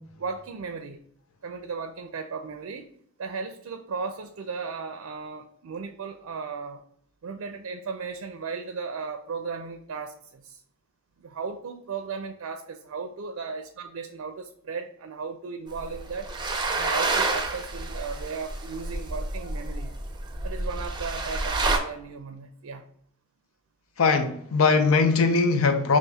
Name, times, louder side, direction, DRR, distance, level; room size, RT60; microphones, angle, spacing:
voice 1, 0.2-1.0 1.4-2.9 3.2-6.8 7.2-10.6 11.2-16.3 16.7-19.9 20.4-22.9, right 5 dB, 70° right, 0.4 m, -36 dB
sound 1, 15.7-21.8, right 3 dB, 20° right, 0.6 m, -29 dB
voice 2, 24.0-26.0, left 4 dB, 75° left, 0.5 m, -21 dB
5.5 x 3.0 x 2.3 m
head